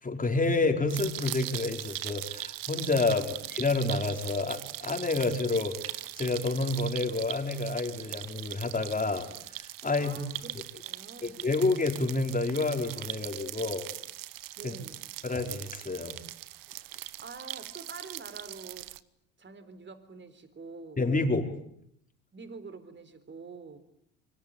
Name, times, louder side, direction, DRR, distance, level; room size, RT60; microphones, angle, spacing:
voice 1, 0.0-9.3 9.6-10.2 11.2-13.9 14.6-14.7 15.2-16.2 21.0-21.5, left 3 dB, 20° left, 5.0 m, -29 dB
sound 1, 0.9-19.0, right 16 dB, 60° right, 1.2 m, -40 dB
voice 2, 3.0-3.4 10.0-10.5 10.8-11.4 14.6-15.0 17.2-18.9 19.4-21.0 22.3-23.8, right 4 dB, 30° right, 4.1 m, -46 dB
28.0 x 24.0 x 8.8 m
hypercardioid pair, 70°, 38 cm